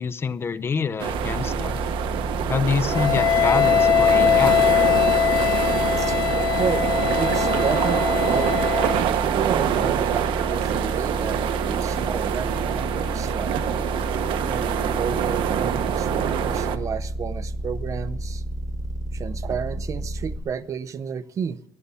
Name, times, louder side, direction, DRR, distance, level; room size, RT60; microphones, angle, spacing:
voice 1, 0.0-1.8 2.5-4.6, left 5 dB, 30° left, 0.6 m, -26 dB
sound 1, 1.0-16.8, right 10 dB, 85° right, 1.0 m, -25 dB
sound 2, 1.1-20.4, right 1 dB, 55° right, 5.2 m, -31 dB
Wind instrument woodwind instrument, 2.9-9.0, left 10 dB, 55° left, 1.0 m, -21 dB
voice 2, 7.2-8.8 9.2-13.6 14.5-18.4 19.1-21.6, right 7 dB, 40° right, 0.7 m, -31 dB
14.0 x 11.0 x 6.9 m
cardioid pair, 150°, 8 cm